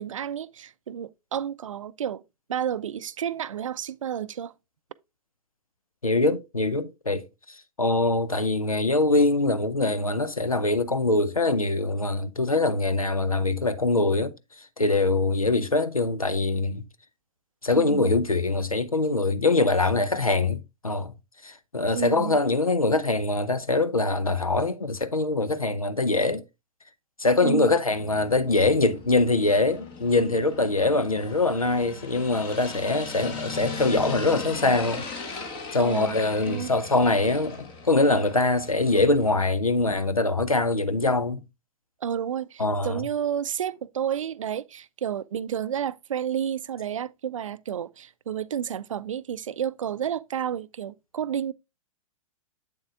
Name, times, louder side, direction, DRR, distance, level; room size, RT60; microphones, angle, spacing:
voice 1, 0.0-2.2 2.5-4.5 17.8-18.1 21.9-22.4 27.4-27.8 35.8-36.2 36.5-36.8 42.0-51.5, right 9 dB, 65° right, 0.4 m, -31 dB
voice 2, 6.0-7.3 7.8-14.3 14.8-16.8 17.6-21.1 21.4-26.4 27.2-35.1 35.7-41.4 42.6-43.1, left 2 dB, 90° left, 0.6 m, -23 dB
sound 1, 27.9-39.5, left 4 dB, 30° left, 1.5 m, -38 dB
7.9 x 7.1 x 2.5 m
figure-of-eight pair, 105°, 18 cm